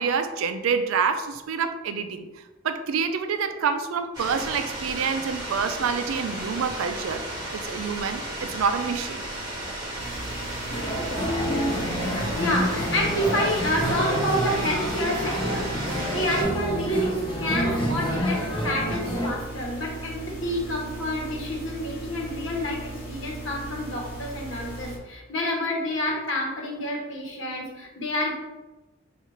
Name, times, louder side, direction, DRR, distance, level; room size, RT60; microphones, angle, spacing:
voice 1, 0.0-2.3 2.6-7.2 7.5-9.2, right 6 dB, 90° right, 8 dB, 0.4 m, -27 dB
sound 1, 4.1-16.4, right 1 dB, 20° right, 1.0 m, -34 dB
sound 2, 10.0-25.0, right 1 dB, 40° left, 1.1 m, -38 dB
sound 3, 10.7-19.3, equal, 25° left, 0.8 m, -28 dB
voice 2, 12.3-28.3, equal, 70° left, -1 dB, 1.0 m, -28 dB
5.6 x 2.4 x 3.0 m, 1.1 s
head